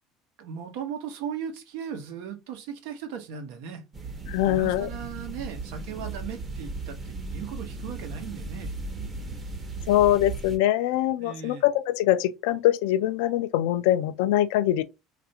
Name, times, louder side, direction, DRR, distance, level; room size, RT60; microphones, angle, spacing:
voice 1, 0.4-3.8 4.4-8.7 11.2-11.6, right 7 dB, 85° right, 0.8 m, -37 dB
sound 1, 3.9-10.6, right 3 dB, 25° right, 0.8 m, -36 dB
voice 2, 4.3-4.9 9.9-14.8, left 13 dB, 90° left, 0.3 m, -23 dB
3.3 x 2.4 x 2.8 m
cardioid pair, 125°, 0 cm